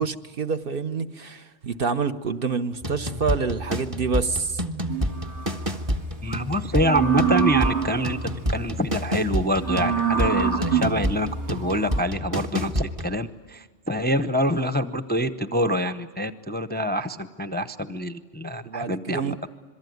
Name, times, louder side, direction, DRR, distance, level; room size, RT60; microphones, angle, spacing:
voice 1, 0.0-4.6 18.6-19.4, right 5 dB, 50° right, 8 dB, 1.1 m, -27 dB
sound 1, 2.8-13.2, equal, 30° right, 1.3 m, -29 dB
sound 2, 4.9-5.7 6.8-8.3 9.5-12.0, right 7 dB, 70° right, 3.0 m, -26 dB
voice 2, 6.2-8.2 8.5-19.4, equal, 10° left, 8 dB, 0.6 m, -26 dB
27.0 x 22.5 x 9.4 m, 1.4 s
omnidirectional pair, 1.2 m